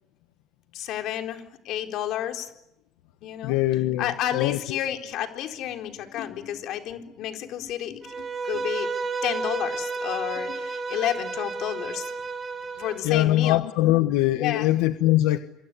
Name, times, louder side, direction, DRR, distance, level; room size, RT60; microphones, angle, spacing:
voice 1, 0.7-2.5 3.2-3.6 4.0-8.9 9.2-12.1 12.8-13.6 14.4-14.7, left 11 dB, 55° left, 5 dB, 4.1 m, -31 dB
voice 2, 3.4-4.6 13.0-15.4, left 15 dB, 85° left, 9 dB, 1.3 m, -22 dB
Bowed string instrument, 8.0-13.0, right 4 dB, 20° right, 5.6 m, -31 dB
27.0 x 22.5 x 9.7 m, 0.83 s
cardioid pair, 150°, 0 cm